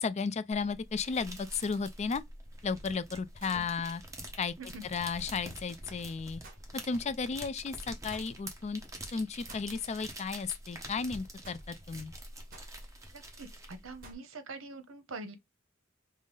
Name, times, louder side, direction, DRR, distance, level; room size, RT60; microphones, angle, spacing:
voice 1, 0.0-2.2 2.6-4.0 4.4-4.5 4.8-6.4 6.9-8.8 9.1-12.1, left 5 dB, 35° left, 0.4 m, -34 dB
sound 1, 0.5-14.1, right 1 dB, 15° right, 1.1 m, -46 dB
sound 2, 3.4-3.7 6.4-6.7 8.1-8.3 9.5-9.7 11.4-11.7 12.5-12.8 14.0-14.3, right 3 dB, 45° right, 1.2 m, -52 dB
voice 2, 13.1-15.4, right 3 dB, 70° right, 0.9 m, -45 dB
5.3 x 2.0 x 3.8 m
head